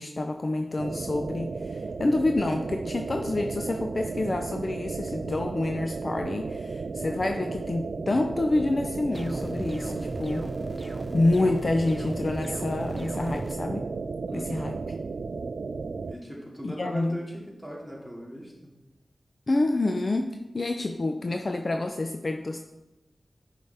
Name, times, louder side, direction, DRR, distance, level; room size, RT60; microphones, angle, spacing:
voice 1, 0.0-10.5 11.1-13.8 14.3-14.8 16.6-17.2 19.5-20.3 20.5-22.6, left 2 dB, 45° left, 5 dB, 0.5 m, -28 dB
sound 1, 0.8-16.1, right 4 dB, 85° right, 0.3 m, -34 dB
sound 2, 9.1-13.5, right 1 dB, 10° right, 0.5 m, -39 dB
voice 2, 14.3-14.7 16.0-18.7, equal, 5° left, -4 dB, 2.4 m, -39 dB
10.5 x 5.1 x 3.4 m, 1.0 s
wide cardioid pair, 85°, 0 cm